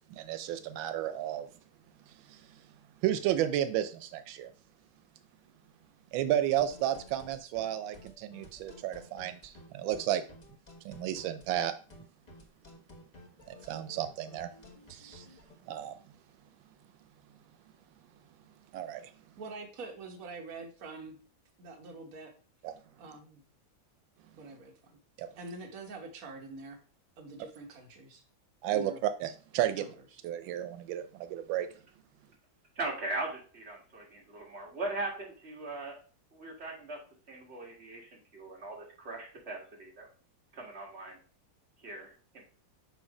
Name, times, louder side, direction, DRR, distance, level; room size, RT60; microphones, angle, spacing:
voice 1, 0.1-1.5 2.3-2.6 3.0-4.5 6.1-10.2 10.8-11.7 13.5-14.5 14.9-15.3 15.7-15.9 18.7-19.1 22.6-22.7 25.2-25.3 28.6-29.9 30.2-31.7, right 11 dB, 90° right, 10 dB, 1.4 m, -32 dB
sound 1, 6.6-15.6, left 1 dB, 25° left, 1.1 m, -53 dB
voice 2, 19.4-21.2 21.6-22.3 23.0-23.4 24.4-25.0 25.4-26.8 27.2-28.2 28.7-29.0 29.7-30.2, right 3 dB, 50° right, 3 dB, 1.5 m, -45 dB
voice 3, 32.8-36.0 36.3-37.0 37.3-40.1 40.5-41.2 41.8-42.4, right 2 dB, 35° right, -1 dB, 2.0 m, -39 dB
6.8 x 3.1 x 4.8 m, 0.41 s
omnidirectional pair, 2.1 m